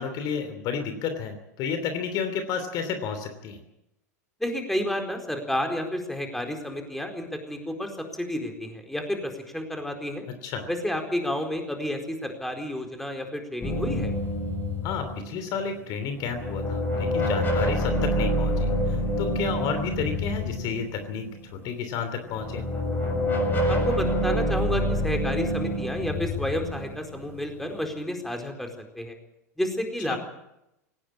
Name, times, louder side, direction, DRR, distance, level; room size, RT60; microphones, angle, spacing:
voice 1, 0.0-3.6 10.4-10.7 14.8-21.3 21.5-22.6 30.1-30.2, left 6 dB, 45° left, 8 dB, 2.9 m, -31 dB
voice 2, 4.4-10.3 10.7-14.1 23.7-28.7 28.9-29.2 29.6-30.2, left 1 dB, 5° left, 4 dB, 4.4 m, -30 dB
sound 1, 13.6-15.8 16.2-21.4 22.3-27.7, equal, 20° left, 7.0 m, -27 dB
18.5 x 17.5 x 8.7 m, 0.86 s
figure-of-eight pair, 85°, 9 cm